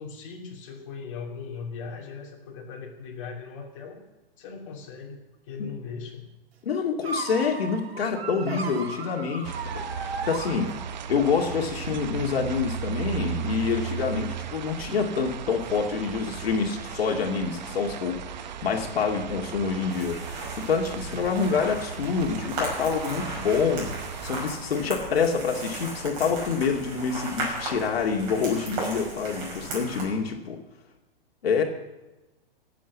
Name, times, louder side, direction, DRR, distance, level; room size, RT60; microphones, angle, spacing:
voice 1, 0.0-4.0 4.4-6.3 21.1-21.4, left 5 dB, 35° left, -2 dB, 2.8 m, -39 dB
voice 2, 6.6-9.5 10.0-10.7 11.1-30.6 31.4-31.6, left 5 dB, 80° left, 1 dB, 2.3 m, -27 dB
sound 1, 7.0-11.2, right 4 dB, 85° right, 2.0 m, -35 dB
sound 2, 9.4-24.5, right 8 dB, 50° right, 0.8 m, -36 dB
sound 3, 19.9-30.0, right 1 dB, 30° right, 5.6 m, -36 dB
18.5 x 7.7 x 7.2 m, 1.1 s
hypercardioid pair, 175°, 30 cm